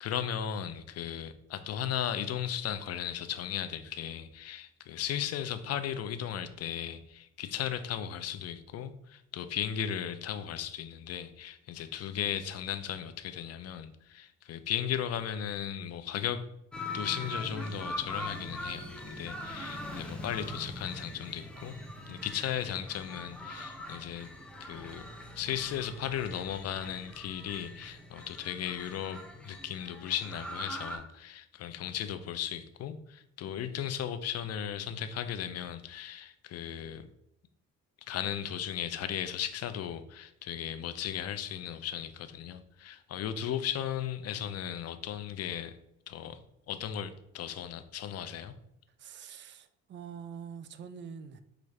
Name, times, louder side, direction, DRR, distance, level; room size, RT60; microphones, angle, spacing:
voice 1, 0.0-16.4 16.9-21.7 22.1-24.3 24.6-25.0 25.4-37.1 38.1-45.7 46.1-46.4 46.7-48.5, left 9 dB, 55° left, 0.5 m, -36 dB
sound 1, 16.7-31.0, left 1 dB, 5° left, 0.6 m, -42 dB
voice 2, 49.0-51.4, right 7 dB, 40° right, 0.4 m, -45 dB
4.7 x 2.5 x 3.2 m
cardioid pair, 90°, 30 cm